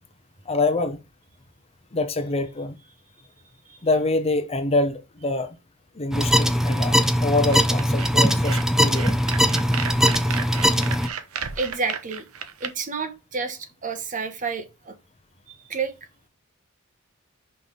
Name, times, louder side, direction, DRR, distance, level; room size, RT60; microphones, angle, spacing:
voice 1, 0.5-1.0 1.9-2.8 3.8-5.6 6.0-7.0 7.2-9.2, left 2 dB, 30° left, 0.8 m, -25 dB
sound 1, 6.1-11.1, equal, ahead, 0.5 m, -20 dB
sound 2, 7.5-12.7, right 7 dB, 80° right, 0.9 m, -33 dB
voice 2, 11.6-12.2 12.6-14.9 15.5-15.9, right 4 dB, 35° right, 1.1 m, -30 dB
5.5 x 4.2 x 4.8 m
head